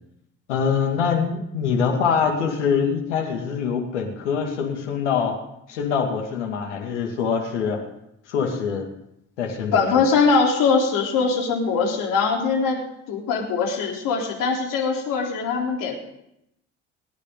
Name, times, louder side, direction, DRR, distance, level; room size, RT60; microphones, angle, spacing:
voice 1, 0.5-5.3 5.7-7.8 8.3-8.9 9.4-10.0, left 6 dB, 85° left, 2 dB, 2.5 m, -24 dB
voice 2, 9.7-12.8 13.1-16.0, left 5 dB, 65° left, 0 dB, 3.8 m, -21 dB
28.0 x 10.0 x 3.9 m, 0.81 s
hypercardioid pair, 55°, 34 cm